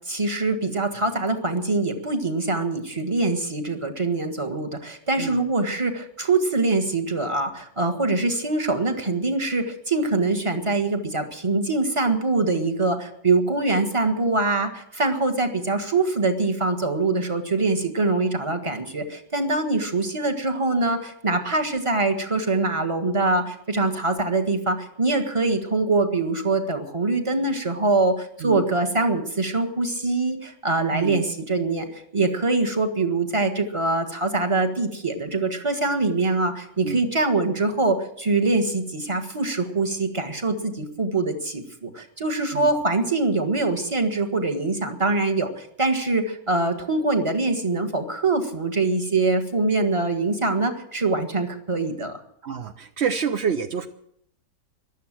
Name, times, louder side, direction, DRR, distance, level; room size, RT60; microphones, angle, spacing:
voice 1, 0.1-52.2, right 3 dB, 20° right, 6 dB, 1.4 m, -24 dB
voice 2, 30.9-31.2 36.8-37.0 42.5-42.7 52.4-53.9, right 7 dB, 65° right, 8 dB, 0.6 m, -28 dB
15.0 x 11.5 x 7.6 m, 0.71 s
omnidirectional pair, 2.0 m